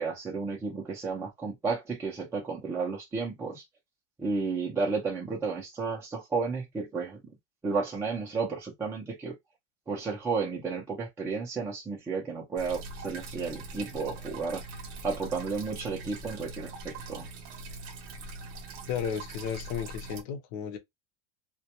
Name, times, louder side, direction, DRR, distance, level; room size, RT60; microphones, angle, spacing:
voice 1, 0.0-3.6 4.2-7.2 7.6-9.4 9.9-14.6 15.0-17.3, right 4 dB, 10° right, 0.4 m, -32 dB
sound 1, 12.6-20.2, right 2 dB, 45° right, 0.7 m, -42 dB
voice 2, 18.9-20.8, left 7 dB, 45° left, 0.7 m, -34 dB
2.2 x 2.1 x 2.8 m
supercardioid pair, 150°, 35 cm